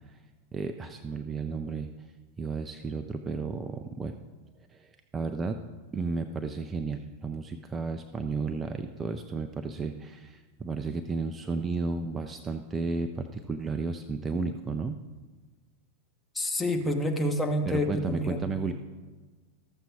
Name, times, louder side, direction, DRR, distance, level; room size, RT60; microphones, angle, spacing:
voice 1, 0.5-1.9 2.4-4.1 4.7-5.6 5.9-15.0 17.7-18.7, right 4 dB, 15° right, 6 dB, 0.4 m, -33 dB
voice 2, 16.4-18.4, left 1 dB, 10° left, 3 dB, 1.0 m, -28 dB
13.5 x 7.4 x 3.5 m, 1.4 s
figure-of-eight pair, 90°, 0 cm